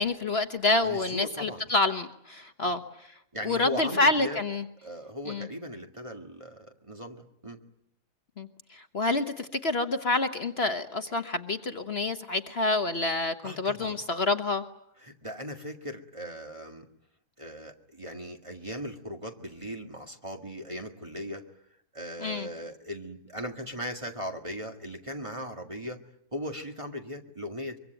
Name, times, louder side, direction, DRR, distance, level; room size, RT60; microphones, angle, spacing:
voice 1, 0.0-2.8 3.4-4.6 5.3-5.5 8.4-14.6 22.2-22.5, left 2 dB, 45° left, 8 dB, 1.4 m, -28 dB
voice 2, 0.8-1.7 2.6-2.8 3.3-4.4 4.8-7.6 13.4-14.0 15.0-16.9 17.4-21.4 21.9-26.0 26.3-27.8, equal, 20° right, 4 dB, 1.9 m, -38 dB
24.0 x 24.0 x 9.1 m, 0.73 s
omnidirectional pair, 1.6 m